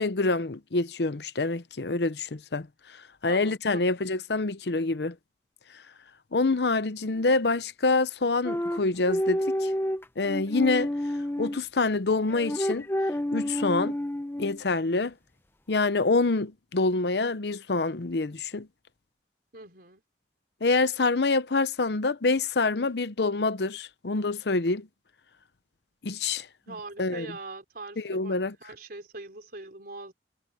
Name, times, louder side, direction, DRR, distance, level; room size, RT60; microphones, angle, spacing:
voice 1, 0.0-2.7 3.2-5.1 6.3-9.7 10.2-10.9 11.4-12.9 13.3-14.0 14.4-15.1 15.7-18.7 20.6-24.9 26.0-26.5 27.0-27.3 28.0-28.5, left 3 dB, 70° left, 0.8 m, -26 dB
voice 2, 3.3-3.9 19.5-20.0 26.6-30.1, right 3 dB, 55° right, 4.2 m, -42 dB
sound 1, 8.4-11.6 12.3-14.6, equal, 15° left, 0.8 m, -29 dB
head